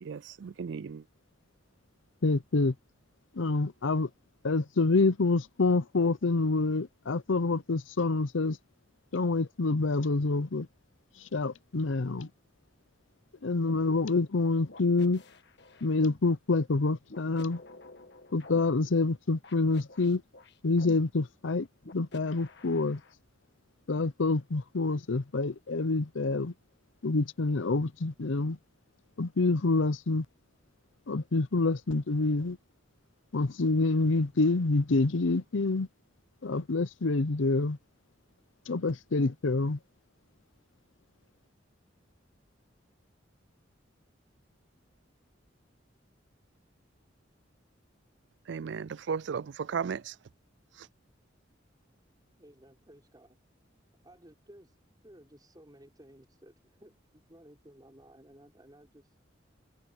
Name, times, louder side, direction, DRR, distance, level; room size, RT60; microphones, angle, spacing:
voice 1, 0.1-1.0 48.5-50.1 50.8-50.9, right 6 dB, 65° right, 0.4 m, -35 dB
voice 2, 2.2-2.7 3.4-4.1 4.4-8.6 9.1-10.7 11.3-12.3 13.4-15.2 15.8-17.6 18.3-20.2 20.6-21.7 21.9-23.0 23.9-26.5 27.0-28.6 29.2-30.2 31.1-32.6 33.3-35.9 36.4-37.8 38.7-39.8, left 3 dB, 85° left, 0.7 m, -27 dB
sound 1, 13.7-13.8 14.7-16.2 17.1-18.6 19.4-21.0 21.8-23.1, left 2 dB, 60° left, 1.6 m, -50 dB
voice 3, 52.4-53.4 54.0-59.2, right 1 dB, 20° right, 5.7 m, -56 dB
head